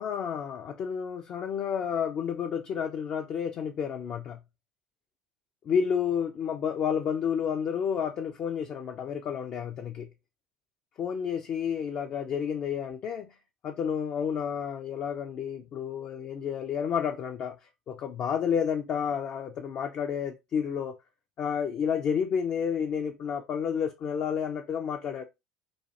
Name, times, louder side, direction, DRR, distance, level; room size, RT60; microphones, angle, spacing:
voice 1, 0.0-4.4 5.6-10.1 11.0-13.3 13.6-17.6 17.9-20.9 21.4-25.2, left 7 dB, 45° left, 0.4 m, -30 dB
3.1 x 2.2 x 2.7 m
figure-of-eight pair, 65°, 3 cm